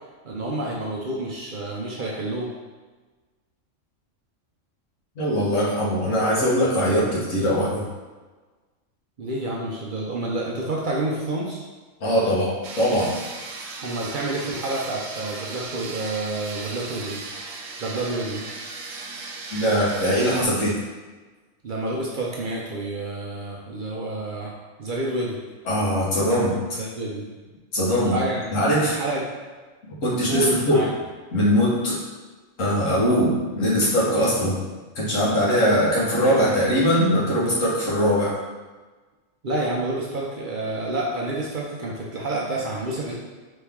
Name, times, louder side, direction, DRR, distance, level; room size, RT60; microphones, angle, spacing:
voice 1, 0.2-2.5 9.2-11.6 13.8-17.2 17.8-18.4 21.6-24.5 24.8-25.4 26.8-27.3 28.1-28.5 28.8-29.2 30.3-30.9 39.4-43.2, right 2 dB, 50° right, -3 dB, 0.7 m, -28 dB
voice 2, 5.2-7.8 12.0-13.1 19.5-20.8 25.7-26.8 27.7-28.2 28.5-28.9 30.0-30.8 31.3-32.0 32.6-34.6 34.9-38.3, equal, 85° left, -7 dB, 1.7 m, -21 dB
sound 1, 12.6-20.5, right 3 dB, 80° right, 1.0 m, -36 dB
4.2 x 3.3 x 3.5 m, 1.3 s
omnidirectional pair, 1.3 m